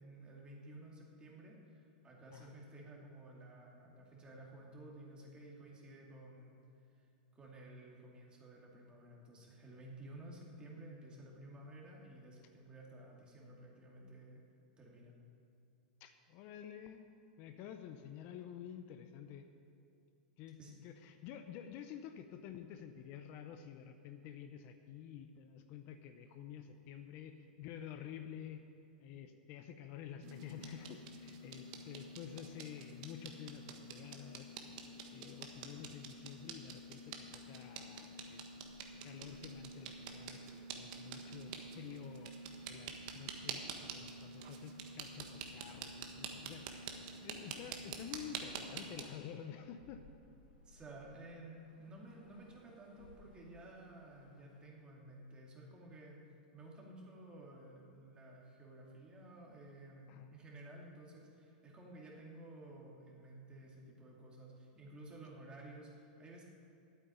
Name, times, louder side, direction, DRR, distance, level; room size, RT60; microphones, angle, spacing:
voice 1, 0.0-6.6 6.9-7.1 7.3-14.4 14.8-15.2 20.6-20.8 50.6-56.2 56.5-66.4, right 1 dB, 20° right, -2 dB, 2.5 m, -54 dB
voice 2, 16.0-17.0 17.4-19.5 20.4-28.7 29.0-34.5 35.1-38.4 39.0-42.3 42.7-47.0 47.2-50.0 60.1-60.3, left 9 dB, 45° left, 7 dB, 0.7 m, -50 dB
sound 1, 30.2-49.0, right 4 dB, 55° right, 1.4 m, -48 dB
sound 2, 38.6-54.7, left 3 dB, 90° left, 2.6 m, -67 dB
9.0 x 8.2 x 9.0 m, 2.5 s
hypercardioid pair, 120°, 5 cm